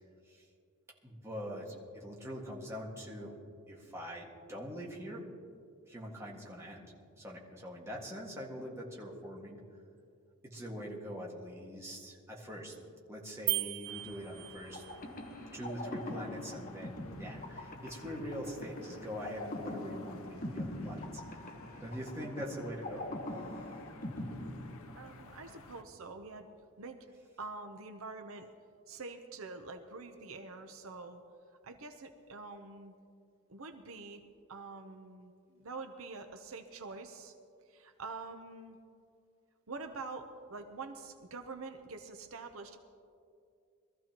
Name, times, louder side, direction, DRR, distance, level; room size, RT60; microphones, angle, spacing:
voice 1, 1.0-3.3 3.7-5.2 5.8-6.9 7.2-9.6 10.4-12.7 13.1-14.8 15.5-23.1, equal, 15° right, -3 dB, 1.8 m, -43 dB
sound 1, 13.5-15.0, right 19 dB, 55° right, 0.3 m, -36 dB
sound 2, 13.9-25.8, left 3 dB, 70° left, 0.8 m, -56 dB
sound 3, 14.7-25.4, left 1 dB, 40° left, 1.2 m, -43 dB
voice 2, 25.0-26.5 26.8-27.0 27.4-28.5 28.9-31.2 31.6-32.9 33.5-34.2 34.5-37.3 37.7-38.8 39.7-42.8, right 3 dB, 70° right, 6 dB, 0.8 m, -46 dB
22.5 x 14.0 x 3.0 m, 2.4 s
head